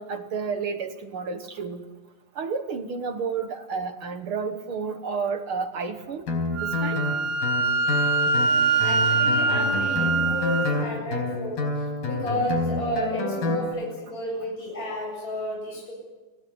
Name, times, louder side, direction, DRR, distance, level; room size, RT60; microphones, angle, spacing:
voice 1, 0.0-1.8 2.3-6.2 6.6-7.0, right 5 dB, 65° right, 7 dB, 1.3 m, -31 dB
Guitar, 6.3-13.6, left 3 dB, 70° left, 6.2 m, -28 dB
Wind instrument woodwind instrument, 6.6-10.7, right 4 dB, 85° right, 3.3 m, -23 dB
voice 2, 8.2-15.9, equal, 20° left, -3 dB, 8.5 m, -31 dB
26.5 x 17.0 x 9.6 m, 1.2 s
omnidirectional pair, 4.2 m